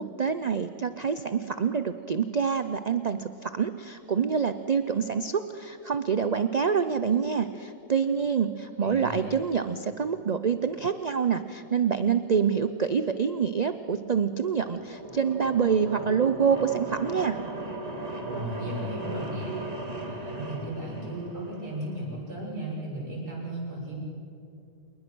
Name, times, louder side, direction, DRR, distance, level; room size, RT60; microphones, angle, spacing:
voice 1, 0.0-17.4, right 6 dB, 60° right, 10 dB, 0.4 m, -26 dB
voice 2, 8.8-9.3 18.2-19.6 20.0-24.0, right 1 dB, 90° right, -4 dB, 7.1 m, -35 dB
sound 1, 14.3-22.1, right 2 dB, 25° right, 2.0 m, -38 dB
27.5 x 20.5 x 6.2 m, 2.6 s
omnidirectional pair, 1.6 m